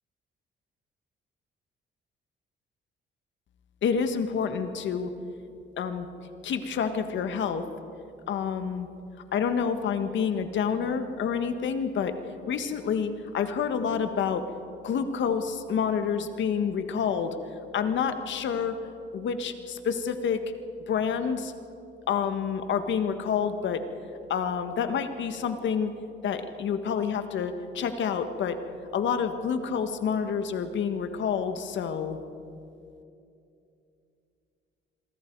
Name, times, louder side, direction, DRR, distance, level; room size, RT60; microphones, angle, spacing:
voice 1, 3.8-5.1 5.8-6.1 6.4-7.7 8.3-8.9 9.3-12.2 12.4-14.5 14.8-17.4 17.7-18.8 19.1-20.4 20.9-21.5 22.1-23.8 24.3-25.9 26.2-28.6 28.9-32.2, left 7 dB, 70° left, 8 dB, 1.6 m, -28 dB
26.5 x 23.0 x 4.7 m, 2.6 s
cardioid pair, 90°, 20 cm